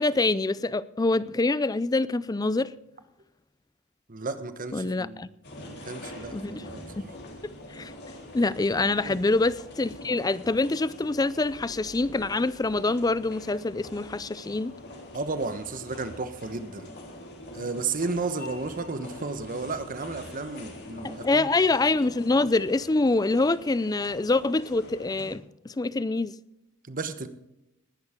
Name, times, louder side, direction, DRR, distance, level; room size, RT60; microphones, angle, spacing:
voice 1, 0.0-2.7 4.7-5.3 6.3-6.7 7.0-7.1 7.4-7.9 8.3-14.7 21.0-26.3, left 3 dB, 15° left, 0.4 m, -25 dB
voice 2, 4.1-6.8 9.0-9.2 15.1-16.9 17.5-21.5 26.9-27.3, right 3 dB, 40° right, 1.1 m, -33 dB
sound 1, 5.4-25.4, left 1 dB, 50° left, 3.3 m, -44 dB
19.5 x 11.0 x 3.7 m
head